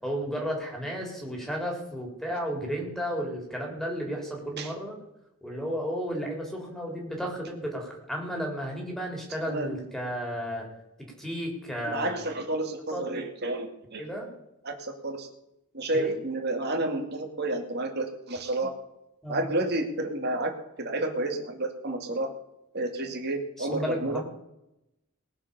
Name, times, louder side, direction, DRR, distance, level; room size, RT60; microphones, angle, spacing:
voice 1, 0.0-5.0 5.4-10.6 11.2-12.2 12.9-13.0 14.0-14.3 15.9-16.1 19.2-19.4 23.6-24.2, equal, ahead, 0 dB, 3.7 m, -33 dB
voice 2, 11.8-14.0 14.6-15.3 15.7-18.7 19.3-22.3 22.7-24.2, right 2 dB, 50° right, 3 dB, 2.4 m, -30 dB
19.5 x 7.3 x 7.0 m, 0.86 s
head